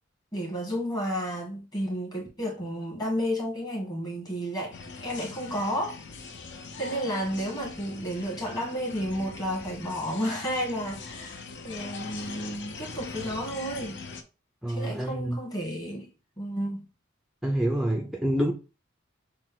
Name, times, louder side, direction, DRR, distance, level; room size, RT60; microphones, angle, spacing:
voice 1, 0.3-6.0 6.8-14.0 14.7-16.1 16.4-16.8, equal, 20° left, 1.5 m, -32 dB
sound 1, 4.7-14.2, left 4 dB, 60° left, 0.7 m, -41 dB
voice 2, 14.6-15.4 17.4-18.5, right 1 dB, ahead, 0.4 m, -27 dB
6.5 x 2.2 x 3.6 m
head